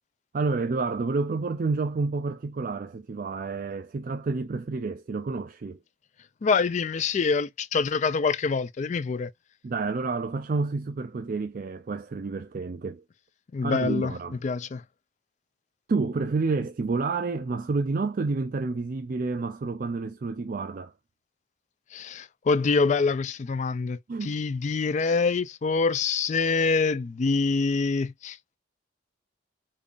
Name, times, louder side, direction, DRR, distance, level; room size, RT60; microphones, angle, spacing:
voice 1, 0.3-5.8 9.6-13.0 13.6-14.4 15.9-20.9 24.1-24.4, right 3 dB, 45° right, 0.4 m, -29 dB
voice 2, 6.4-9.3 13.5-14.1 14.4-14.8 21.9-28.6, left 4 dB, 40° left, 0.3 m, -25 dB
5.3 x 2.5 x 2.4 m
head